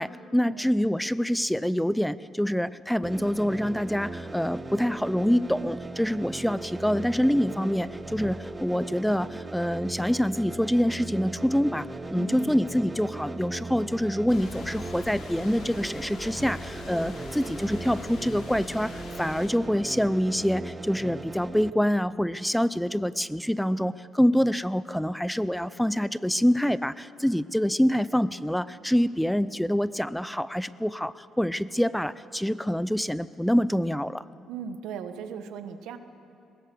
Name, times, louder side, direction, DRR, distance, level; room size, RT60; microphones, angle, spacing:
voice 1, 0.0-34.2, equal, ahead, 16 dB, 0.5 m, -26 dB
sound 1, 3.0-21.7, right 2 dB, 20° right, 0.9 m, -38 dB
voice 2, 12.1-12.5 34.5-36.0, right 7 dB, 90° right, 9 dB, 1.3 m, -38 dB
sound 2, 14.3-19.5, left 4 dB, 75° left, 3.5 m, -43 dB
20.5 x 17.5 x 7.8 m, 2.7 s
cardioid pair, 90°, 0 cm